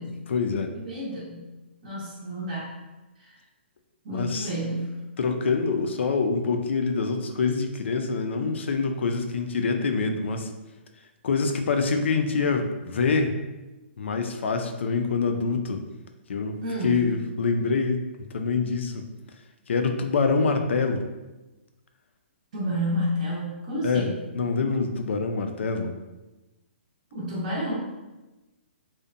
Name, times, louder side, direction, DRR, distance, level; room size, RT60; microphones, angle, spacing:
voice 1, 0.0-0.7 4.1-4.5 5.2-10.5 11.2-13.3 14.0-15.8 16.3-16.6 16.8-18.0 18.3-19.1 19.7-21.0 23.8-25.9, left 4 dB, 75° left, 5 dB, 0.4 m, -25 dB
voice 2, 0.7-1.4 1.8-2.7 3.2-3.3 4.0-5.0 16.6-17.1 22.5-24.1 27.1-27.9, equal, 40° right, -7 dB, 0.6 m, -30 dB
2.7 x 2.1 x 2.4 m, 1.1 s
hypercardioid pair, 170°, 6 cm